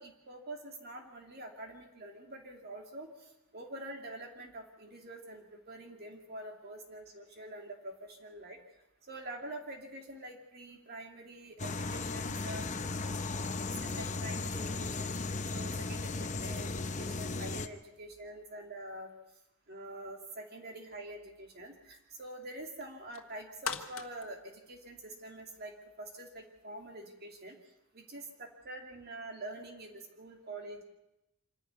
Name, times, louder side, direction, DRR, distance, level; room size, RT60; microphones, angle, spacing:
voice 1, 0.0-3.1 3.5-8.6 9.1-12.7 13.5-15.1 15.5-19.1 19.7-27.6 27.9-30.8, right 1 dB, 45° right, 2 dB, 2.7 m, -46 dB
sound 1, 11.6-17.7, left 3 dB, 35° left, 0.8 m, -36 dB
sound 2, 22.8-25.6 26.0-26.1, left 6 dB, 70° left, 1.5 m, -42 dB
26.0 x 11.5 x 9.5 m, 0.92 s
head